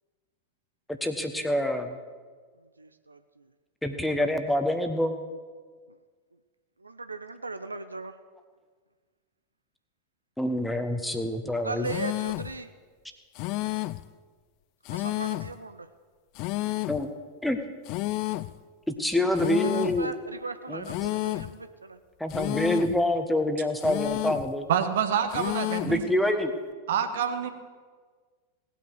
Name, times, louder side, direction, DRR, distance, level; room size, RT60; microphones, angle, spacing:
voice 1, 0.9-2.0 3.8-5.2 10.4-11.9 16.9-17.1 17.4-17.6 18.9-20.1 20.7-20.9 22.2-24.7 25.9-26.5, left 1 dB, 5° left, 1.3 m, -26 dB
voice 2, 2.6-3.5 6.8-8.2 11.6-12.7 14.9-15.9 19.7-22.0, right 3 dB, 80° right, 0.6 m, -38 dB
sound 1, 11.9-12.6 13.4-14.1 14.9-15.6 16.4-17.1 17.9-18.6 19.4-20.1 20.9-21.6 22.3-23.0 23.8-24.5 25.3-26.0, left 18 dB, 45° left, 0.4 m, -31 dB
voice 3, 24.7-26.0 26.9-27.5, right 8 dB, 60° right, 1.3 m, -27 dB
18.0 x 9.1 x 6.4 m
figure-of-eight pair, 90°, 0 cm